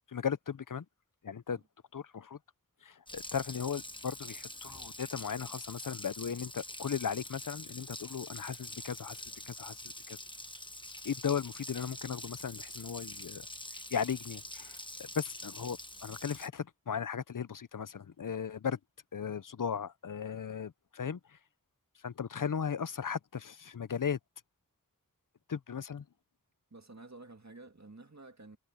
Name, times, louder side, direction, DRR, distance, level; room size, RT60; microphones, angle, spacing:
voice 1, 0.1-0.8 1.2-1.6 1.9-2.4 2.8-10.2 11.0-13.5 13.9-18.8 19.1-21.4 22.0-24.2 25.5-26.0, left 7 dB, 65° left, 0.6 m, -37 dB
Water tap faucet, 3.1-16.5, left 1 dB, 15° left, 1.3 m, -45 dB
sound 1, 16.7-18.4, equal, 10° right, 6.9 m, -74 dB
voice 2, 26.7-28.6, right 2 dB, 50° right, 2.1 m, -51 dB
wide cardioid pair, 45°, 34 cm